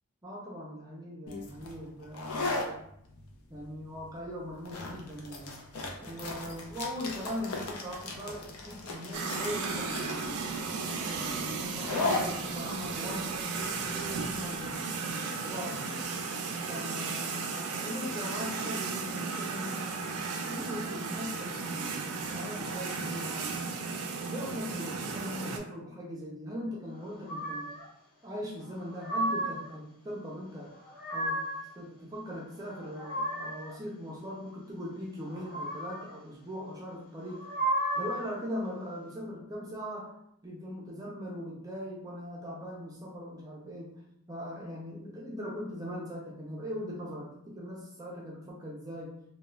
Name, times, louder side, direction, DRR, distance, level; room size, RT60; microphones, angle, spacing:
voice 1, 0.2-2.8 3.5-5.6 6.0-10.6 11.1-16.1 16.7-20.0 20.4-23.8 24.2-27.7 28.2-30.7 31.1-31.5 31.7-37.5 38.0-40.1 40.4-44.0 44.3-49.2, equal, 15° right, -3 dB, 0.4 m, -40 dB
sound 1, 1.3-14.7, left 3 dB, 70° left, 0.5 m, -37 dB
sound 2, 9.1-25.6, right 4 dB, 80° right, 0.4 m, -35 dB
sound 3, 27.3-27.9 28.7-29.7 30.7-31.7 32.6-33.7 35.3-36.1 37.2-38.3, right 1 dB, 40° left, 0.8 m, -33 dB
2.3 x 2.2 x 3.1 m, 0.74 s
head